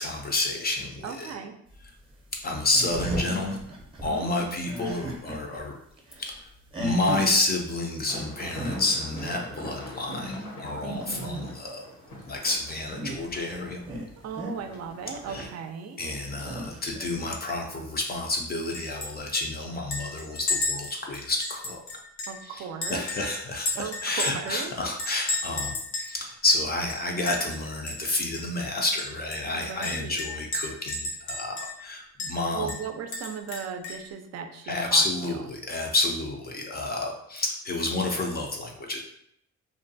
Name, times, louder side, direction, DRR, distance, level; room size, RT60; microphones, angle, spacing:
voice 1, 0.0-1.3 2.4-3.6 4.0-5.7 6.2-6.3 6.8-11.8 12.3-13.8 15.3-15.5 16.0-22.0 22.4-22.6 22.9-32.7 34.6-39.0, left 2 dB, 35° left, 1 dB, 0.4 m, -29 dB
voice 2, 1.0-1.5 4.0-4.6 10.8-11.5 14.2-16.0 22.3-23.0 23.8-24.7 29.5-30.3 32.5-35.3, right 6 dB, 60° right, 7 dB, 0.4 m, -37 dB
sound 1, 1.7-5.6 5.9-7.3 8.3-8.4 8.5-8.8 9.1-9.5 9.8-11.7 12.7-13.4 13.9-14.5 16.2-17.4 18.1-18.2 19.2-19.3, right 1 dB, 15° right, 0.6 m, -36 dB
sound 2, 8.1-15.5, left 1 dB, 90° left, 1.1 m, -43 dB
Chink clink, 18.7-19.1 19.3-19.4 19.9-22.4 22.8-24.5 25.0-26.1 26.5-26.6 26.9-27.6 27.9-28.0 28.3-28.4 29.0-31.9 32.2-32.3 32.7-34.1, left 2 dB, 70° left, 0.7 m, -33 dB
2.6 x 2.1 x 2.6 m, 0.71 s
cardioid pair, 90°, 30 cm